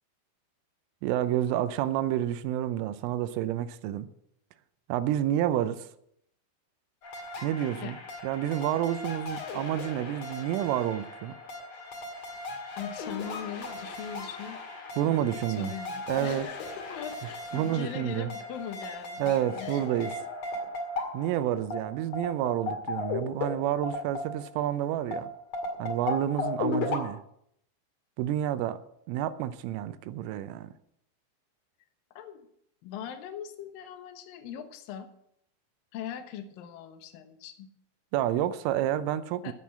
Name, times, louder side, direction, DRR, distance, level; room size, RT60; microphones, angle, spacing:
voice 1, 1.0-4.1 4.9-5.9 7.4-8.0 8.2-11.3 15.0-15.7 16.1-16.5 17.5-18.3 19.2-20.1 21.1-25.3 25.8-27.2 28.2-28.8 29.1-30.7 38.1-39.5, right 11 dB, 85° right, 3.3 m, -29 dB
sound 1, 7.0-24.7 25.1-27.0, left 3 dB, 50° left, 2.3 m, -37 dB
voice 2, 12.8-14.6 15.0-19.7 32.2-32.5 32.8-35.1 35.9-37.7 39.4-39.5, left 9 dB, 75° left, 2.1 m, -40 dB
14.5 x 6.1 x 7.4 m
omnidirectional pair, 5.7 m